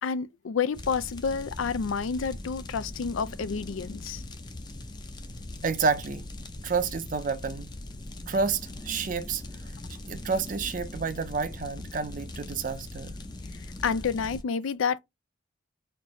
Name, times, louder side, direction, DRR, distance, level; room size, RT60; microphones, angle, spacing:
voice 1, 0.0-4.2 13.8-15.0, left 6 dB, 85° left, 0.4 m, -29 dB
sound 1, 0.7-14.4, left 2 dB, 20° left, 0.5 m, -41 dB
voice 2, 5.6-6.3 6.6-7.7 8.3-9.4 10.1-13.2, right 4 dB, 45° right, 0.5 m, -29 dB
4.4 x 2.5 x 3.1 m
head